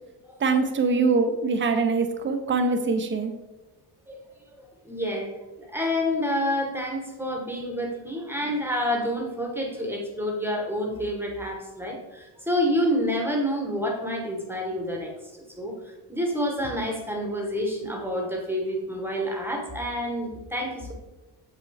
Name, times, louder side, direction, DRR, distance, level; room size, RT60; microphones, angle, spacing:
voice 1, 0.4-3.3, right 4 dB, 30° right, 6 dB, 0.7 m, -23 dB
voice 2, 4.6-5.3 5.6-20.9, equal, 5° right, 0 dB, 1.1 m, -28 dB
7.1 x 5.5 x 3.4 m, 1.1 s
cardioid pair, 160°, 40 cm